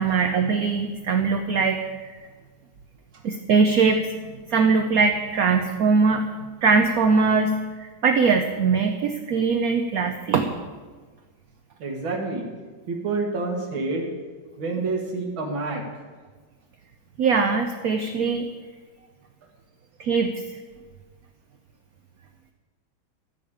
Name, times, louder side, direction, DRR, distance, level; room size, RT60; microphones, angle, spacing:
voice 1, 0.0-2.2 3.2-4.1 4.5-6.3 6.6-10.5 17.2-18.5 20.0-20.3, right 4 dB, 60° right, 5 dB, 1.0 m, -21 dB
voice 2, 11.8-12.5 12.9-14.1 14.6-15.8, right 3 dB, 80° right, 1 dB, 2.7 m, -28 dB
14.0 x 5.1 x 8.7 m, 1.4 s
omnidirectional pair, 2.2 m